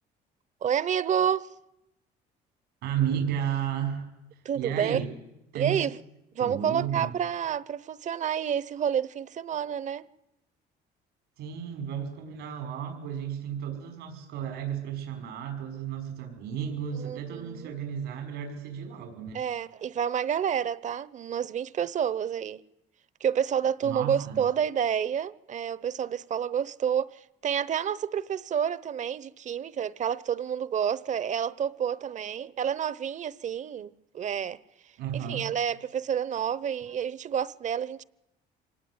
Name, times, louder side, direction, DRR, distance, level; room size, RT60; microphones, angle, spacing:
voice 1, 0.6-1.5 4.4-5.0 5.5-5.9 6.3-10.0 17.0-17.7 19.3-22.6 23.2-34.6 35.3-38.0, right 8 dB, 45° right, 0.9 m, -29 dB
voice 2, 2.8-4.0 4.6-5.1 5.5-5.8 6.4-7.1 11.4-19.4 23.8-24.4 35.0-35.5, right 9 dB, 85° right, 5.5 m, -33 dB
25.0 x 18.5 x 9.6 m
cardioid pair, 110°, 17 cm